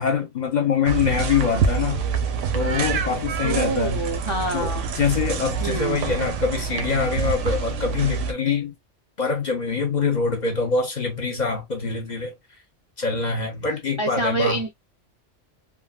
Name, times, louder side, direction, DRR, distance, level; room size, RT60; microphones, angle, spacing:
voice 1, 0.0-2.0 2.5-4.0 4.5-8.7 9.2-12.3 13.0-14.6, left 5 dB, 45° left, 0.7 m, -24 dB
sound 1, 0.9-8.3, right 5 dB, 85° right, 1.0 m, -26 dB
voice 2, 3.4-4.9 5.6-6.0 14.0-14.7, right 2 dB, 45° right, 0.4 m, -26 dB
3.5 x 2.2 x 2.2 m
omnidirectional pair, 1.3 m